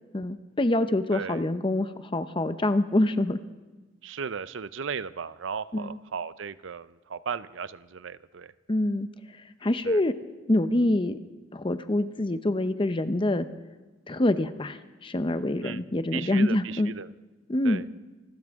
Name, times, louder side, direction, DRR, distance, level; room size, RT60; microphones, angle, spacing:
voice 1, 0.1-3.4 5.7-6.0 8.7-9.1 9.6-10.1 10.5-11.2 11.5-13.5 14.1-16.9 17.5-17.8, left 1 dB, 25° left, 11 dB, 0.7 m, -25 dB
voice 2, 1.1-1.4 4.0-8.5 9.8-10.0 15.6-15.8 16.1-17.1 17.6-18.0, right 6 dB, 75° right, 16 dB, 0.5 m, -36 dB
26.5 x 13.0 x 3.6 m, 1.2 s
head